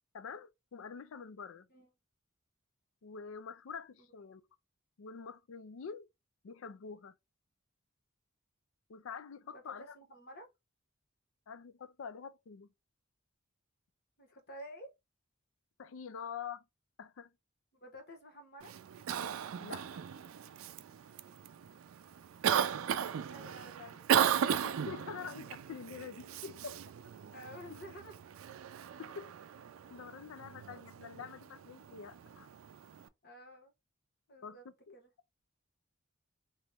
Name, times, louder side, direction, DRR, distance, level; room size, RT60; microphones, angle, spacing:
voice 1, 0.1-1.7 3.0-4.4 5.0-6.1 6.4-7.1 8.9-10.0 11.5-12.7 15.8-16.6 17.0-17.3 19.6-20.0 24.6-26.8 29.0-29.3 29.9-32.5 34.4-34.6 34.9-35.0, left 6 dB, 75° left, 0.4 m, -46 dB
voice 2, 9.5-10.5 14.2-14.9 17.8-18.7 22.6-24.1 27.3-28.1 33.2-33.7 34.3-34.6 34.9-35.1, equal, 50° left, 1.2 m, -51 dB
Cough, 18.6-33.1, right 8 dB, 85° right, 0.4 m, -36 dB
3.1 x 3.0 x 3.4 m
head